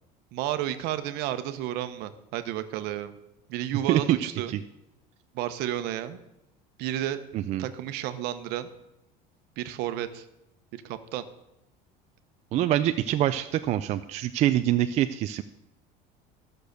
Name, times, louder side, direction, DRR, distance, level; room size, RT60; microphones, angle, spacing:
voice 1, 0.3-3.1 3.5-4.6 5.3-6.2 6.8-7.2 7.6-8.7 9.6-10.2 10.7-11.2, right 12 dB, 60° right, 11 dB, 1.0 m, -32 dB
voice 2, 7.3-7.7 12.5-15.4, right 12 dB, 35° right, 9 dB, 0.4 m, -25 dB
14.0 x 6.7 x 6.6 m, 0.90 s
cardioid pair, 155°, 19 cm